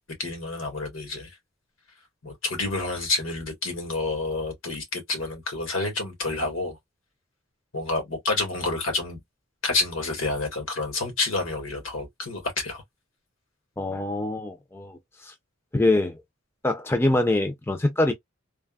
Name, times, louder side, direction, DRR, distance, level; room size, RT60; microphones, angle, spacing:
voice 1, 0.2-1.3 2.2-6.8 7.7-9.2 9.6-12.8, left 3 dB, 80° left, 1.4 m, -29 dB
voice 2, 13.8-15.0 15.2-15.3 15.7-16.2 16.6-18.1, left 2 dB, 10° left, 0.5 m, -24 dB
3.3 x 2.0 x 2.3 m
head